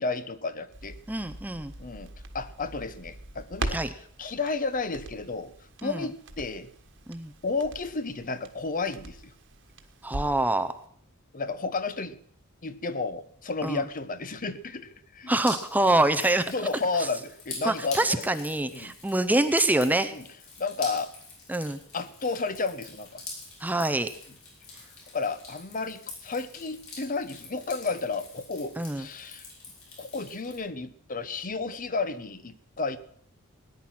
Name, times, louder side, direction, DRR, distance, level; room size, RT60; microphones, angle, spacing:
voice 1, 0.0-1.0 1.8-3.8 4.2-5.5 5.8-6.7 7.4-9.3 11.3-12.2 12.6-15.3 16.5-18.2 18.7-19.0 20.1-20.3 20.6-21.1 21.9-23.2 25.1-29.5 30.0-33.0, left 4 dB, 40° left, 13 dB, 0.9 m, -32 dB
Crackle, 0.7-10.5 10.8-10.9, right 2 dB, 60° right, 1.5 m, -41 dB
voice 2, 1.1-1.7 3.7-3.9 5.8-6.1 7.1-7.3 10.0-10.7 13.6-13.8 15.3-16.5 17.0-17.1 17.6-20.1 21.5-21.8 23.6-24.1 28.8-29.1, right 2 dB, 10° right, 10 dB, 0.6 m, -25 dB
Drip, 15.3-30.6, left 3 dB, 70° left, 6.4 m, -45 dB
18.0 x 10.0 x 5.9 m, 0.62 s
head